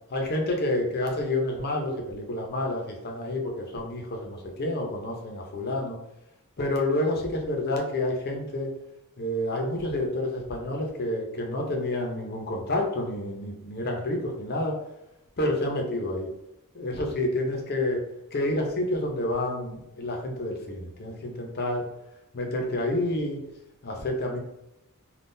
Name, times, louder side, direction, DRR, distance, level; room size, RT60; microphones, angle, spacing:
voice 1, 0.1-6.0 6.6-8.7 9.2-14.7 15.4-16.3 16.7-18.0 18.3-21.8 22.3-23.4 23.8-24.4, left 1 dB, 45° left, 1 dB, 0.7 m, -29 dB
3.7 x 2.4 x 2.6 m, 0.86 s
head